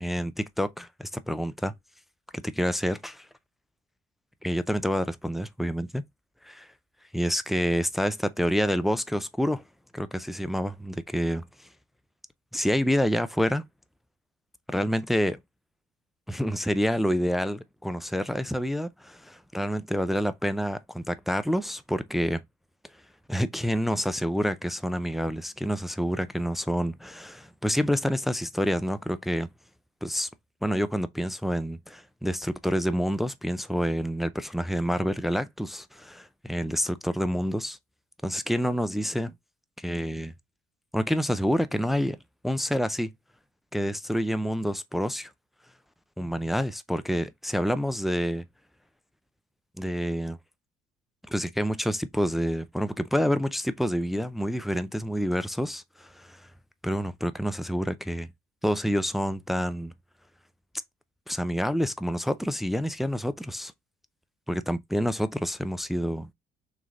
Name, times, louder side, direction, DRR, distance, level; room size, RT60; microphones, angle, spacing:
voice 1, 0.0-1.7 2.3-3.3 4.4-6.0 6.4-6.7 7.1-9.6 9.9-11.7 12.5-13.6 14.7-15.4 16.3-22.4 23.3-29.5 30.0-30.3 30.6-37.8 38.2-39.3 39.8-40.3 40.9-42.2 42.4-43.1 43.7-45.3 46.2-48.4 49.8-50.4 51.3-56.5 56.8-58.3 58.6-59.9 61.3-63.7 64.5-66.3, equal, ahead, 0.4 m, -28 dB
3.6 x 3.3 x 3.8 m
cardioid pair, 110°, 17 cm